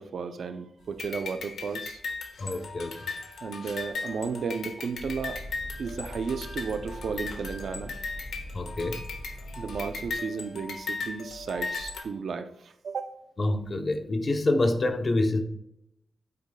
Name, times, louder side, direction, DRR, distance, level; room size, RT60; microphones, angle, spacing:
voice 1, 0.0-2.0 3.4-5.4 5.8-7.9 9.6-13.1, right 5 dB, 60° right, 10 dB, 0.6 m, -34 dB
sound 1, 1.0-12.0, left 4 dB, 80° left, 1.5 m, -37 dB
voice 2, 2.4-3.1 8.5-9.0 13.4-15.4, left 2 dB, 30° left, 7 dB, 0.8 m, -27 dB
sound 2, 4.9-10.1, equal, 20° right, 3.2 m, -42 dB
9.5 x 8.1 x 2.3 m, 0.82 s
wide cardioid pair, 175°, 0 cm